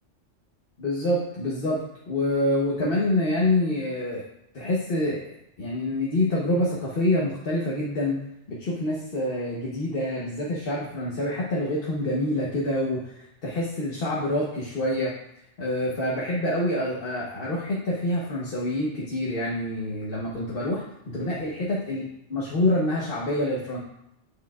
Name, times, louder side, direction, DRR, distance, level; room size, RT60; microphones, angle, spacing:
voice 1, 0.8-4.2 4.5-5.2 5.6-8.2 8.5-15.1 15.6-20.8 21.1-23.8, left 1 dB, 55° left, -4 dB, 1.2 m, -26 dB
8.2 x 4.9 x 2.4 m, 0.83 s
omnidirectional pair, 1.2 m